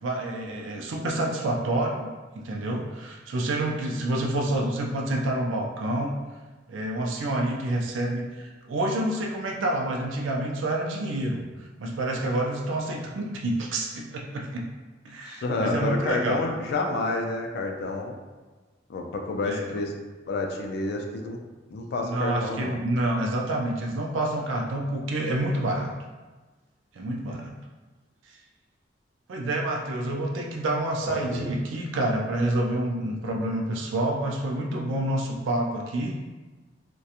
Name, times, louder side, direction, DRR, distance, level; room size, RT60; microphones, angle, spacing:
voice 1, 0.0-6.1 6.7-14.6 15.0-16.5 19.4-19.8 22.0-25.9 26.9-27.5 29.3-36.1, right 1 dB, 90° right, 0 dB, 0.4 m, -28 dB
voice 2, 15.3-18.1 18.9-19.9 20.3-21.4 21.7-22.8 31.0-31.5, left 2 dB, 60° left, 2 dB, 0.3 m, -29 dB
2.8 x 2.2 x 2.4 m, 1.3 s
head